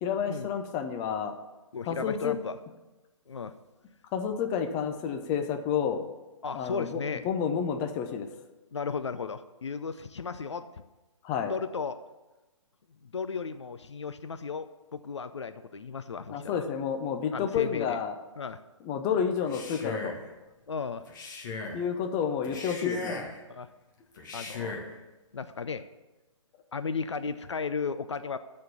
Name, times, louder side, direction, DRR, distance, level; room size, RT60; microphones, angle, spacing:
voice 1, 0.0-1.3 1.8-2.4 4.1-6.0 6.5-8.3 11.2-11.5 16.3-18.2 18.8-20.2 21.7-23.2, left 7 dB, 20° left, 6 dB, 0.7 m, -30 dB
voice 2, 1.7-2.6 3.3-3.5 6.4-7.3 8.7-10.7 11.5-12.0 13.0-16.6 17.3-18.0 18.4-18.6 20.7-21.1 23.5-23.7 24.3-24.8 25.3-25.8 26.7-28.4, left 5 dB, 60° left, 11 dB, 0.6 m, -35 dB
Male speech man speaking, 19.4-20.3 21.1-21.8 22.4-23.4 24.2-24.9, left 4 dB, 40° left, 1.6 m, -37 dB
12.5 x 4.4 x 8.2 m, 1.1 s
figure-of-eight pair, 130°, 17 cm